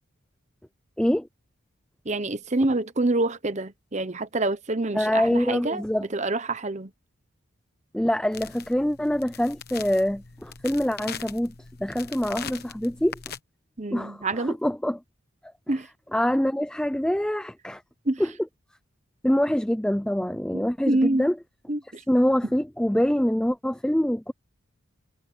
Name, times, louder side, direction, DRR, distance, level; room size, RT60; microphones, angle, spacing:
voice 1, 2.0-5.8 6.1-6.9 13.8-14.5 15.7-15.9 18.0-18.2 20.5-21.3 21.7-22.0, right 2 dB, 35° right, 0.9 m, -26 dB
voice 2, 4.9-6.1 7.9-11.5 11.8-13.2 13.9-15.0 15.7-15.8 16.1-17.8 18.2-18.3 19.2-21.3 22.1-24.3, equal, 5° left, 0.4 m, -25 dB
sound 1, 8.3-13.4, left 7 dB, 45° left, 1.2 m, -41 dB
head